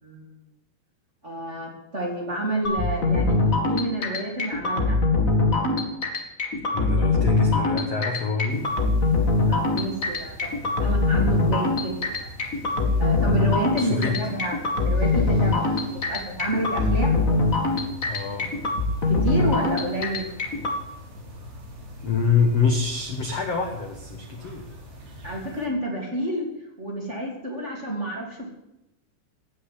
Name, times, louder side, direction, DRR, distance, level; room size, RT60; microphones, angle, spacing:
voice 1, 1.2-5.0 9.5-11.9 13.0-14.6 14.8-15.7 16.1-17.2 19.1-20.3 25.2-26.5 26.8-28.5, right 1 dB, 20° right, -1 dB, 2.8 m, -29 dB
sound 1, 2.6-20.8, left 3 dB, 40° left, 1.1 m, -23 dB
voice 2, 6.7-8.6 13.8-14.2 18.1-18.5 22.0-24.7, left 5 dB, 85° left, 4 dB, 1.3 m, -25 dB
sound 2, 8.5-25.7, left 2 dB, 65° right, 6.7 m, -42 dB
17.0 x 6.6 x 9.9 m, 0.88 s
omnidirectional pair, 5.2 m